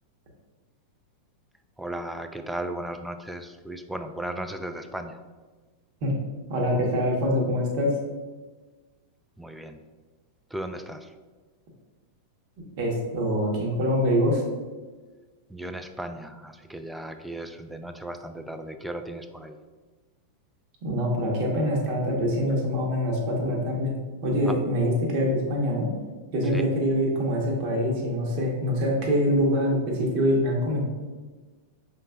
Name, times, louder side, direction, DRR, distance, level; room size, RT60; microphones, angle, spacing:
voice 1, 1.8-5.2 9.4-9.8 10.5-11.1 15.5-19.6 24.4-24.6 26.5-26.7, right 1 dB, 5° right, 7 dB, 0.4 m, -36 dB
voice 2, 6.5-7.9 12.8-14.4 20.8-23.9 24.2-25.9 26.3-30.8, equal, 55° right, -1 dB, 1.1 m, -24 dB
5.4 x 4.0 x 2.3 m, 1.3 s
hypercardioid pair, 110°, 0 cm